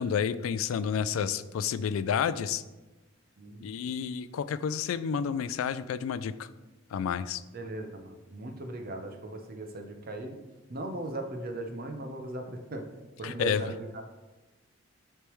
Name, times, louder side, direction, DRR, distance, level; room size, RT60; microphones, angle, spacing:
voice 1, 0.0-2.6 3.6-6.5 6.9-7.4 13.2-13.6, left 7 dB, 90° left, 14 dB, 0.3 m, -30 dB
voice 2, 3.4-3.7 7.5-10.4 10.7-12.9 13.2-14.0, right 2 dB, 45° right, 5 dB, 0.7 m, -38 dB
9.9 x 3.3 x 3.1 m, 1.1 s
head